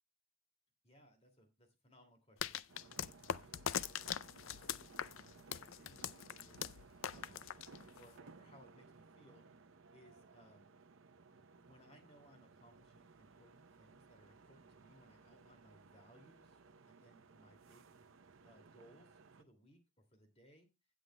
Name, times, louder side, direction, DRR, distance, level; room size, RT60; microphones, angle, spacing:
voice 1, 0.8-3.8 4.4-7.5 8.0-9.4 9.9-10.7 11.6-16.6 16.9-17.9 18.4-20.7, equal, 30° left, 5 dB, 2.3 m, -65 dB
sound 1, 2.4-8.2, left 9 dB, 80° left, 0.4 m, -42 dB
sound 2, 2.7-19.4, right 4 dB, 75° right, 0.7 m, -61 dB
16.5 x 7.6 x 2.2 m, 0.23 s
head